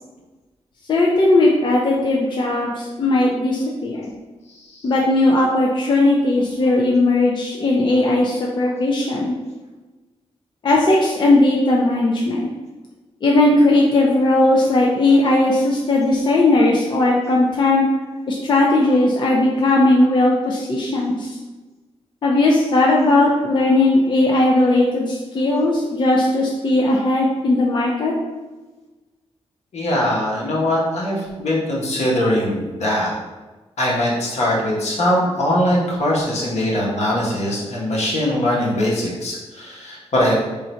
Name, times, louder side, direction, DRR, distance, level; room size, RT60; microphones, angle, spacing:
voice 1, 0.9-4.1 4.8-9.4 10.6-12.5 13.2-17.8 18.3-21.4 22.2-28.1, left 2 dB, 45° left, -2 dB, 0.5 m, -17 dB
voice 2, 29.7-33.1 33.8-40.3, left 1 dB, 75° left, -4 dB, 1.2 m, -21 dB
3.7 x 2.5 x 4.3 m, 1.2 s
wide cardioid pair, 160°, 11 cm